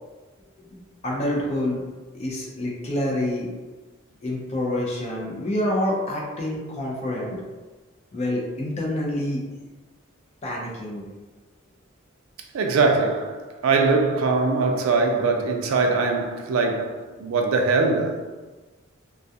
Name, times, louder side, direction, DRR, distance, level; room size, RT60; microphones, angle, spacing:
voice 1, 1.0-1.8 2.1-3.5 4.2-7.4 8.1-9.4 10.4-11.1, left 1 dB, 30° left, 0.5 m, -27 dB
voice 2, 12.5-18.2, right 3 dB, 85° right, 0.4 m, -22 dB
2.3 x 2.2 x 2.7 m
head